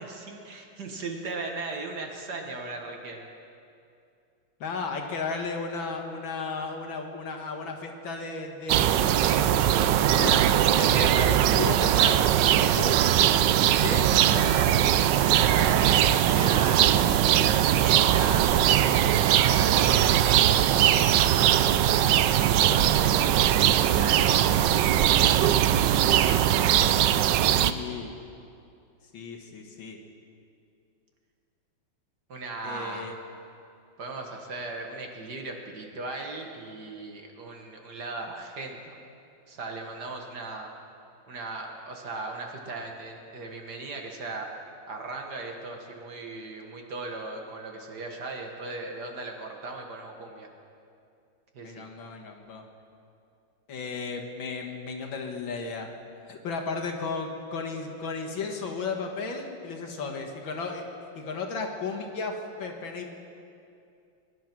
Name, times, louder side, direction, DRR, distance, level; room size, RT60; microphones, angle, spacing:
voice 1, 0.0-3.3 15.2-17.0 17.3-25.4 32.3-33.1 34.0-39.0 39.5-40.7 41.3-44.5 44.9-50.5 51.5-51.8, right 3 dB, 55° right, 2 dB, 1.9 m, -38 dB
voice 2, 4.6-12.2 12.8-13.4 13.8-14.7 27.3-28.1 29.1-30.0 32.6-33.1 51.6-52.6 53.7-55.9 56.2-60.9 61.2-63.1, left 4 dB, 70° left, 2 dB, 2.1 m, -34 dB
sound 1, 8.7-27.7, right 11 dB, 75° right, 1.1 m, -21 dB
21.5 x 11.0 x 6.0 m, 2.5 s
omnidirectional pair, 2.3 m